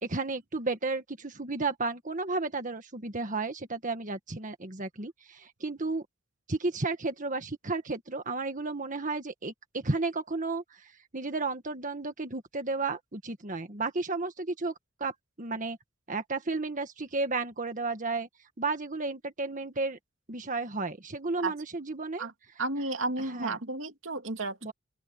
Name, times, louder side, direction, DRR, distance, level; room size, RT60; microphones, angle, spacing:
voice 1, 0.0-6.0 6.5-14.7 15.0-15.8 16.1-18.3 18.6-20.0 20.3-22.3 23.3-23.6 24.6-24.7, right 3 dB, 40° right, 1.6 m, -33 dB
voice 2, 22.6-24.7, right 2 dB, 85° right, 2.5 m, -32 dB
open air
head